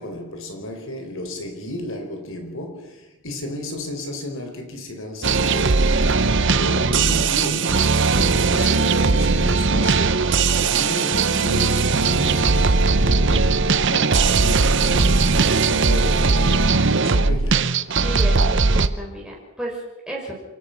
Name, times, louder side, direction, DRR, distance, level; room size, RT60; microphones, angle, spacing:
voice 1, 0.0-6.1 6.6-17.7, left 1 dB, 60° left, 4.5 m, -33 dB
sound 1, 5.2-18.9, right 4 dB, 55° right, 0.9 m, -19 dB
voice 2, 18.0-20.4, right 1 dB, 5° right, 4.8 m, -33 dB
28.0 x 16.5 x 6.0 m
head